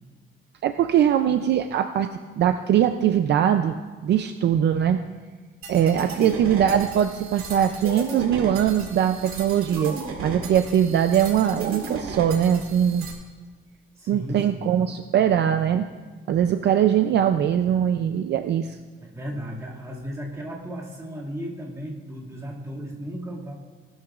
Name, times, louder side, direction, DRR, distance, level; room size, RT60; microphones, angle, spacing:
voice 1, 0.6-2.1 2.4-3.8 4.0-5.0 5.7-13.1 14.1-15.9 16.3-18.8, right 9 dB, 55° right, 8 dB, 0.5 m, -21 dB
sound 1, 5.6-13.1, right 3 dB, 85° right, 2.3 m, -35 dB
voice 2, 14.0-14.8 19.0-23.5, equal, 15° right, -5 dB, 2.1 m, -35 dB
18.0 x 12.0 x 2.4 m, 1.5 s
cardioid pair, 170°, 21 cm